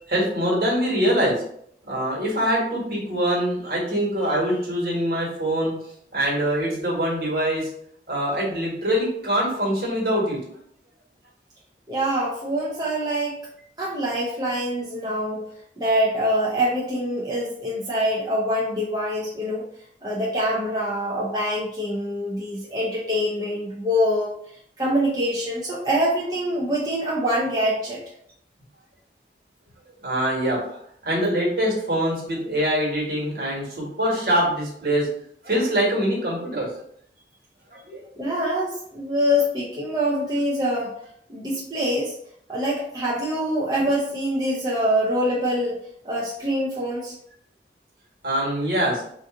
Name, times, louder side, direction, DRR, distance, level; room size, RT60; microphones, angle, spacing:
voice 1, 0.1-1.4 1.8-5.7 6.1-7.7 8.1-10.4 30.0-35.1 35.4-36.7 37.7-38.0 48.2-49.0, equal, 60° right, -3 dB, 1.5 m, -24 dB
voice 2, 11.9-13.4 13.8-15.4 15.8-19.6 20.0-24.3 24.8-28.0 38.2-40.9 41.3-42.1 42.5-45.8 46.0-47.1, equal, 25° right, -6 dB, 0.6 m, -24 dB
3.9 x 2.6 x 3.7 m, 0.68 s
head